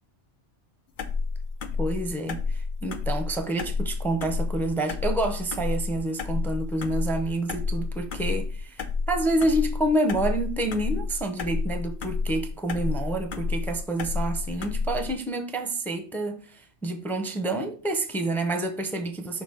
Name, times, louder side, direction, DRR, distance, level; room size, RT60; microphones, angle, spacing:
sound 1, 1.0-15.1, left 4 dB, 55° left, 0.8 m, -30 dB
voice 1, 1.8-19.4, right 2 dB, ahead, 0.6 m, -28 dB
6.1 x 3.0 x 5.4 m
omnidirectional pair, 1.2 m